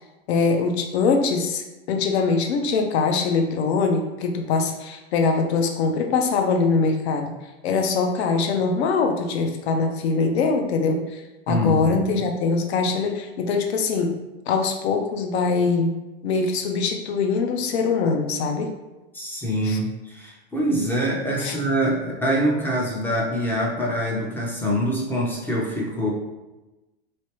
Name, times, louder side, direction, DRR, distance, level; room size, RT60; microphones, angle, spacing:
voice 1, 0.3-7.3 7.6-14.2 14.5-15.9 16.2-18.7 19.6-19.8 21.4-21.6, left 4 dB, 80° left, 4 dB, 0.6 m, -23 dB
voice 2, 11.5-12.1 19.1-26.1, equal, 5° left, -3 dB, 0.4 m, -24 dB
3.2 x 3.1 x 2.9 m, 1.1 s
supercardioid pair, 145°, 32 cm